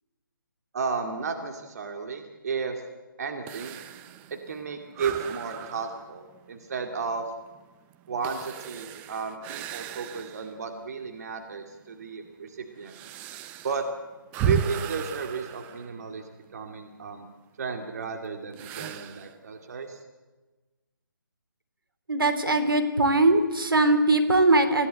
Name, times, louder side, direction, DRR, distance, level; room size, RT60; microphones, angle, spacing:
voice 1, 0.7-2.8 3.2-3.8 4.3-7.2 8.1-13.0 13.6-13.8 14.4-16.2 16.5-17.3 17.6-20.0, right 5 dB, 45° right, 5 dB, 2.3 m, -33 dB
sound 1, 3.5-10.6 11.1-11.2 11.9-16.5 18.5-19.4, right 8 dB, 15° right, 0.6 m, -35 dB
voice 2, 22.1-24.9, right 2 dB, 75° right, 9 dB, 3.1 m, -21 dB
26.0 x 16.0 x 8.1 m, 1.2 s
figure-of-eight pair, 150°, 12 cm